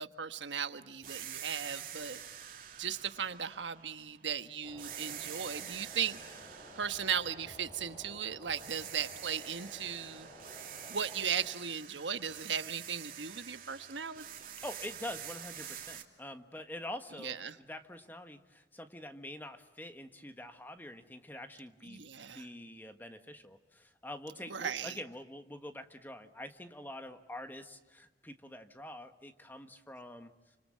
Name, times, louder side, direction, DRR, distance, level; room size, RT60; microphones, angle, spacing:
voice 1, 0.0-2.2 2.8-6.2 6.8-10.3 10.9-14.2 17.2-17.6 21.9-22.5 24.5-25.0, right 7 dB, 90° right, 9 dB, 1.3 m, -37 dB
sound 1, 1.0-4.3 4.8-8.1 8.5-16.0, right 10 dB, 50° right, 2.8 m, -47 dB
sound 2, 4.6-11.6, equal, 30° left, 6.5 m, -53 dB
voice 2, 14.6-22.0 22.3-30.3, left 1 dB, 10° left, 7 dB, 1.5 m, -46 dB
29.5 x 26.0 x 7.5 m, 1.1 s
head